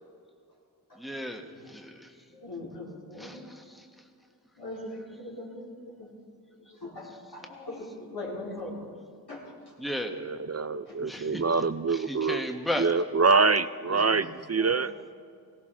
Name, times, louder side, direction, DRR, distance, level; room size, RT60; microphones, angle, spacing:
voice 1, 0.9-2.2 3.2-3.9 7.0-7.2 9.8-10.2 11.0-11.4 11.9-12.9 13.9-14.1, left 1 dB, ahead, 3 dB, 1.4 m, -35 dB
voice 2, 1.6-2.0 2.3-3.5 4.6-5.7 6.5-8.9 9.3-9.4 9.9-10.0 10.8-11.4 13.8-14.2 14.5-14.8, left 2 dB, 85° left, -6 dB, 4.3 m, -41 dB
voice 3, 10.1-12.5 12.8-14.9, right 4 dB, 40° right, 13 dB, 0.5 m, -25 dB
17.5 x 17.5 x 3.8 m, 2.3 s
wide cardioid pair, 45°, 38 cm